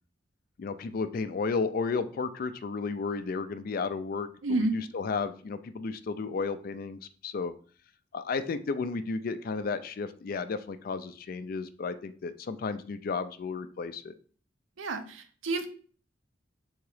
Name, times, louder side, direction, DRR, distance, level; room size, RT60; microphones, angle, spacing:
voice 1, 0.6-7.5 8.1-14.1, left 4 dB, 50° left, 11 dB, 0.3 m, -33 dB
voice 2, 4.4-4.8 14.8-15.7, right 2 dB, 85° right, 8 dB, 0.6 m, -29 dB
3.6 x 2.9 x 4.8 m, 0.44 s
head